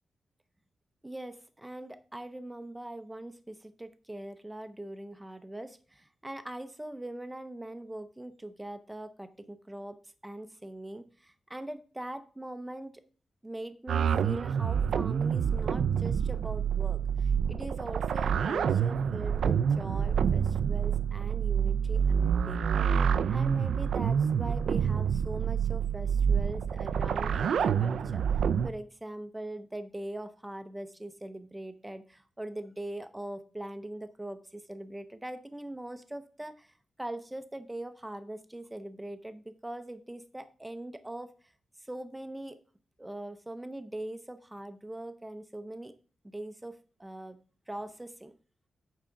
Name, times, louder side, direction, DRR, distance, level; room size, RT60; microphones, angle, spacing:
voice 1, 1.0-10.0 10.2-13.0 13.4-28.2 28.6-41.3 41.8-42.6 43.0-45.9 46.2-47.4 47.7-48.3, right 1 dB, 10° right, 9 dB, 0.5 m, -41 dB
sound 1, 13.9-28.7, right 7 dB, 80° right, 0.4 m, -27 dB
8.8 x 3.6 x 5.7 m, 0.39 s
wide cardioid pair, 175°, 0 cm